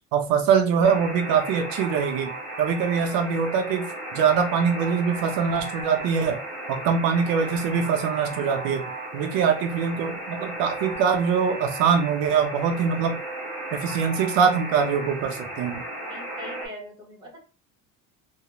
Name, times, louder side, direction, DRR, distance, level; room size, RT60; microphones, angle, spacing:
voice 1, 0.1-2.3 2.6-3.9 4.1-6.4 6.7-8.8 9.1-13.2 13.7-15.8, right 6 dB, 75° right, 5 dB, 0.6 m, -23 dB
Alarm, 0.8-16.7, right 1 dB, 10° left, 1.0 m, -35 dB
voice 2, 16.1-17.4, equal, 15° right, -2 dB, 0.7 m, -41 dB
2.4 x 2.0 x 2.9 m, 0.33 s
cardioid pair, 165°, 34 cm